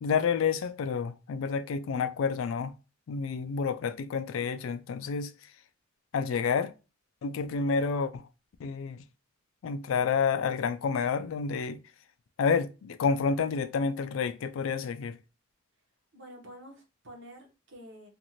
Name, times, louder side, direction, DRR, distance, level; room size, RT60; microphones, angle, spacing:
voice 1, 0.0-2.7 3.1-5.3 6.1-6.7 7.2-8.3 8.6-9.0 9.6-11.8 12.4-15.2, left 5 dB, 80° left, 0.3 m, -29 dB
voice 2, 16.1-18.1, equal, 65° right, 1.1 m, -49 dB
2.6 x 2.5 x 2.9 m
head